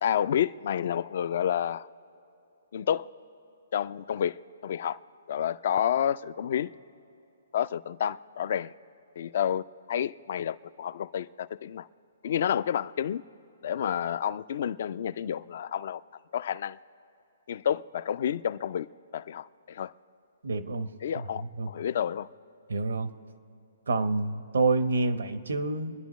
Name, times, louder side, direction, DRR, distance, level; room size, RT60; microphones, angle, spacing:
voice 1, 0.0-1.9 2.7-3.1 3.7-4.4 4.6-5.0 5.3-6.7 7.5-8.7 9.2-11.9 12.2-13.2 13.6-16.0 16.3-16.8 17.5-18.9 19.1-19.9 21.0-21.4 21.7-22.3, left 9 dB, 60° left, 17 dB, 0.4 m, -29 dB
voice 2, 20.4-21.7 22.7-23.1 23.9-25.9, right 3 dB, 85° right, 11 dB, 0.9 m, -28 dB
26.0 x 10.5 x 3.1 m, 2.7 s
hypercardioid pair, 145°, 0 cm